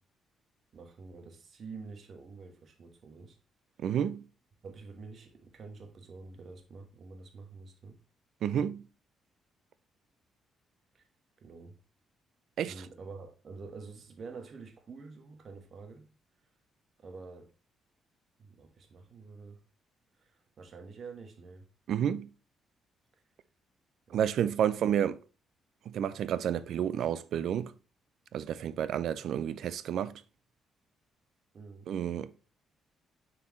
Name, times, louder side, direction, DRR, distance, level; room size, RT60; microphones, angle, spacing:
voice 1, 0.7-3.4 4.6-8.0 10.9-11.0 11.4-11.7 12.7-16.0 17.0-17.5 18.4-19.6 20.2-21.7 24.1-24.3 31.5-31.9, right 4 dB, 50° right, 1.3 m, -48 dB
voice 2, 3.8-4.3 8.4-8.9 12.6-12.9 21.9-22.3 24.1-25.2 25.9-27.7 28.3-30.2 31.9-32.3, right 9 dB, 70° right, 0.4 m, -30 dB
7.0 x 4.6 x 3.1 m
cardioid pair, 90°, 0 cm